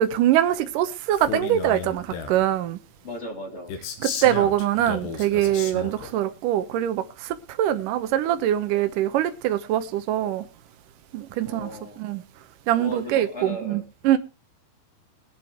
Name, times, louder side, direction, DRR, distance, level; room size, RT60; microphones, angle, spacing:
voice 1, 0.0-2.8 4.0-7.0 7.6-10.4 11.1-11.7 12.0-12.2 12.7-14.2, right 12 dB, 70° right, 2.1 m, -23 dB
Male speech man speaking, 1.1-2.5 3.7-6.1, left 6 dB, 75° left, 3.8 m, -33 dB
voice 2, 3.0-3.7 11.4-12.0 12.7-13.8, left 1 dB, 20° left, 2.5 m, -36 dB
20.5 x 7.6 x 4.6 m
omnidirectional pair, 5.1 m